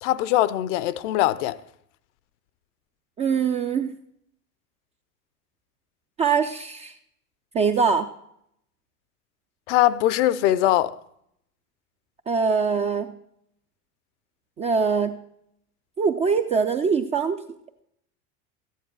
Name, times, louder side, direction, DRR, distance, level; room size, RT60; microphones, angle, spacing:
voice 1, 0.0-1.6 9.7-11.0, left 14 dB, 50° left, 0.6 m, -21 dB
voice 2, 3.2-3.9 6.2-7.0 7.5-8.1 12.3-13.1 14.6-15.2 16.0-17.4, right 5 dB, 15° right, 0.3 m, -23 dB
14.0 x 10.0 x 4.6 m
figure-of-eight pair, 80°, 47 cm